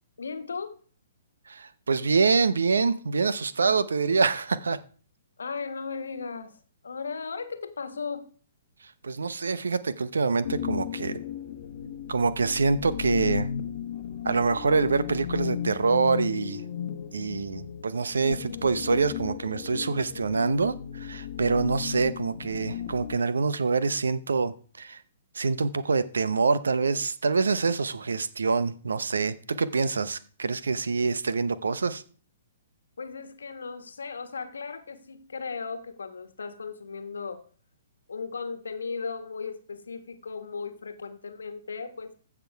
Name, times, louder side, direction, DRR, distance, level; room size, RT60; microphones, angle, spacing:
voice 1, 0.2-0.8 5.4-6.6 6.8-8.3 33.0-37.5 38.1-42.1, left 5 dB, 75° left, 1.3 m, -36 dB
voice 2, 1.5-4.8 9.0-11.2 12.1-13.5 14.2-16.6 17.1-25.0 25.3-32.0, right 4 dB, 75° right, 0.8 m, -26 dB
sound 1, 10.4-23.2, left 9 dB, 55° left, 1.0 m, -35 dB
15.0 x 6.0 x 4.6 m
figure-of-eight pair, 125°, 0 cm